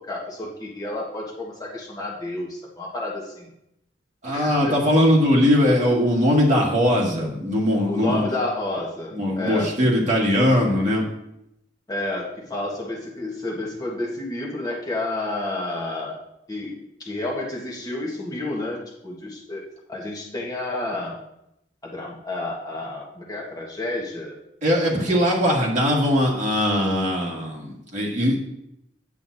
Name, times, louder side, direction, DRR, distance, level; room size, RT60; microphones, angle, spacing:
voice 1, 0.0-3.5 4.3-4.8 7.9-9.7 11.9-16.2 16.5-19.6 19.9-21.2 21.8-24.3 25.1-25.2, left 2 dB, 20° left, -3 dB, 1.4 m, -30 dB
voice 2, 4.2-8.2 9.1-11.0 24.6-28.4, equal, 40° right, -3 dB, 1.9 m, -20 dB
9.0 x 8.1 x 2.7 m, 0.80 s
head